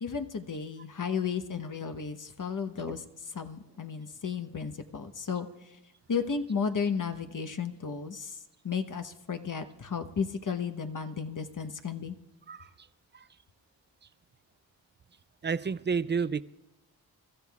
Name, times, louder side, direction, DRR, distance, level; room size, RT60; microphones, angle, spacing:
voice 1, 0.0-5.5 6.1-8.4 8.6-12.1, left 6 dB, 45° left, 7 dB, 1.1 m, -33 dB
voice 2, 15.4-16.4, right 5 dB, 25° right, 17 dB, 0.4 m, -30 dB
28.5 x 13.5 x 2.4 m, 1.0 s
cardioid pair, 45°, 44 cm